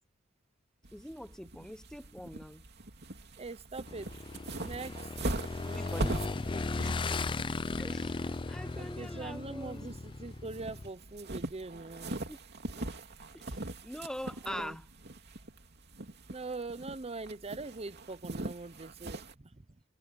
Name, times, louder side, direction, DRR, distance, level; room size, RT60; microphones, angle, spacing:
sound 1, 0.8-19.3, right 2 dB, 55° right, 2.8 m, -42 dB
voice 1, 0.9-2.6 5.6-6.9 7.8-8.1 8.4-9.9 12.3-12.4 13.3-13.6 13.8-14.8, equal, 5° left, 1.0 m, -43 dB
voice 2, 3.4-4.1 4.6-5.1 8.1-8.4 8.8-12.2 14.4-14.8 16.3-19.7, right 3 dB, 30° right, 0.9 m, -42 dB
Motorcycle / Engine, 3.9-10.9, left 3 dB, 25° left, 0.4 m, -37 dB
head